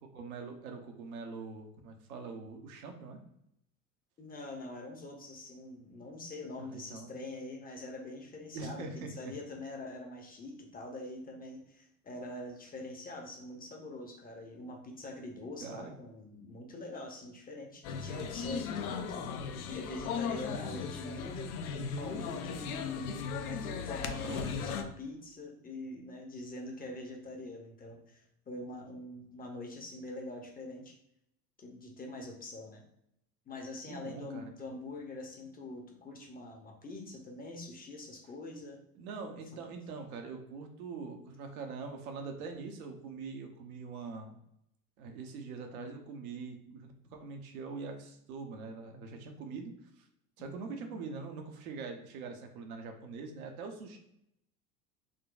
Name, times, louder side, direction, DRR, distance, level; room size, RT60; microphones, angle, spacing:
voice 1, 0.0-3.2 6.6-7.2 8.5-9.3 15.6-15.9 24.1-24.7 33.9-34.8 39.0-44.4 45.0-50.1 50.4-54.0, right 4 dB, 65° right, 4 dB, 0.8 m, -43 dB
voice 2, 4.2-21.6 22.0-30.9 31.6-32.8 33.5-38.8 50.4-50.9, left 2 dB, 20° left, 2 dB, 0.6 m, -44 dB
sound 1, 17.8-24.8, left 6 dB, 75° left, 0.5 m, -37 dB
3.8 x 2.2 x 2.4 m, 0.77 s
hypercardioid pair, 75°, 45 cm